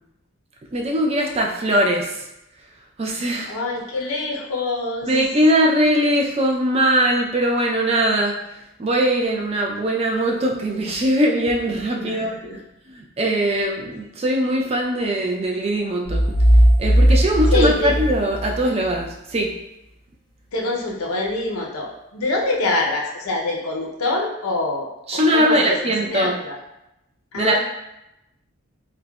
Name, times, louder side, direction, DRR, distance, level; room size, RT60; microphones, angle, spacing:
voice 1, 0.7-2.2 3.0-3.6 5.0-8.3 8.8-12.4 12.9-16.2 16.8-19.5 25.1-26.4 27.3-27.6, right 1 dB, 30° right, 0 dB, 0.3 m, -21 dB
voice 2, 3.5-5.1 11.9-12.6 17.5-17.9 20.5-25.8 26.0-26.6 27.3-27.6, left 2 dB, 85° left, -2 dB, 0.5 m, -25 dB
sound 1, 16.1-18.9, equal, 60° right, 0.7 m, -17 dB
3.7 x 2.1 x 2.2 m, 0.88 s
head